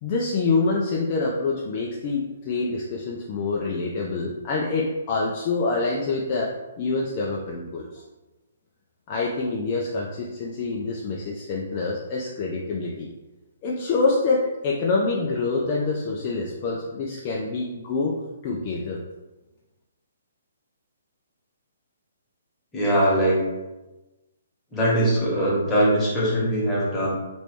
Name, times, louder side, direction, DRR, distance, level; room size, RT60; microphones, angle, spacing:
voice 1, 0.0-8.0 9.1-13.1 13.6-19.0, left 3 dB, 35° left, -3 dB, 0.4 m, -26 dB
voice 2, 22.7-23.5 24.7-27.1, right 1 dB, 10° left, -8 dB, 1.3 m, -21 dB
3.0 x 2.9 x 3.2 m, 1.1 s
figure-of-eight pair, 130°, 0 cm